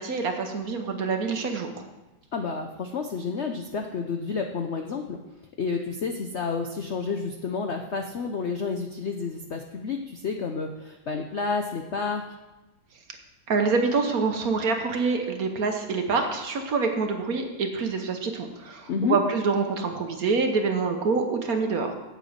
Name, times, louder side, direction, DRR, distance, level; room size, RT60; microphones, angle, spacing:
voice 1, 0.0-1.7 13.5-21.9, right 4 dB, 55° right, 5 dB, 1.3 m, -26 dB
voice 2, 2.3-5.2 5.6-12.3 18.9-19.2, left 5 dB, 75° left, 4 dB, 0.6 m, -30 dB
8.3 x 8.1 x 6.4 m, 1.1 s
omnidirectional pair, 2.1 m